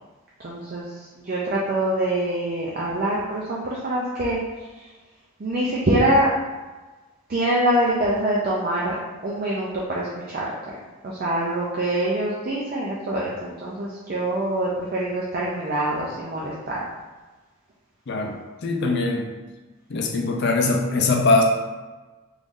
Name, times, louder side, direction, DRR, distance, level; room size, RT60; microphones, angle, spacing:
voice 1, 0.4-4.4 4.7-4.9 5.4-6.3 7.3-9.0 9.2-10.8 11.0-16.8, right 1 dB, 45° right, -5 dB, 0.5 m, -25 dB
voice 2, 18.1-18.4 18.6-19.3 19.9-21.4, left 3 dB, 55° left, 2 dB, 0.5 m, -21 dB
3.2 x 2.6 x 3.6 m, 1.2 s
head